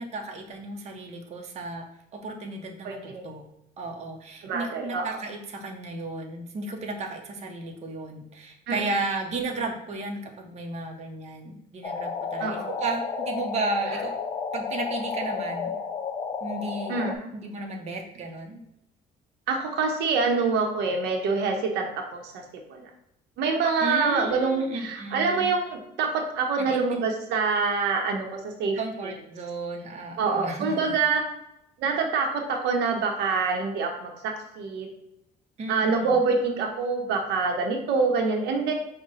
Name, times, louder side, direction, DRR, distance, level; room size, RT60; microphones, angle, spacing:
voice 1, 0.0-1.9 2.1-3.4 3.8-14.1 14.5-15.8 16.4-17.0 17.3-18.6 23.8-25.5 26.6-27.1 28.8-31.0 35.6-36.2, right 3 dB, 40° right, 1 dB, 0.7 m, -34 dB
voice 2, 2.8-3.2 4.4-5.2 8.7-9.0 12.4-12.7 16.9-17.3 19.5-22.4 22.7-22.9 23.4-28.8 30.2-31.2 31.8-34.9 35.7-38.7, right 4 dB, 85° right, 3 dB, 0.8 m, -26 dB
sound 1, 11.8-17.1, left 5 dB, 30° left, 0.4 m, -32 dB
4.9 x 2.1 x 4.0 m, 0.82 s
cardioid pair, 110°, 17 cm